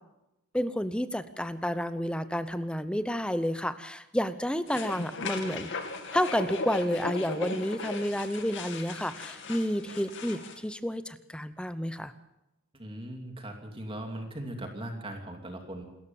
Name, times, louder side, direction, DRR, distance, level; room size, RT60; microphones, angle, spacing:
voice 1, 0.5-5.7 6.1-12.1, equal, 5° left, 12 dB, 0.8 m, -30 dB
sound 1, 4.7-10.6, left 3 dB, 60° left, 2.6 m, -37 dB
voice 2, 12.7-15.8, right 1 dB, 25° right, 4 dB, 2.8 m, -39 dB
28.0 x 14.0 x 7.2 m, 0.91 s
head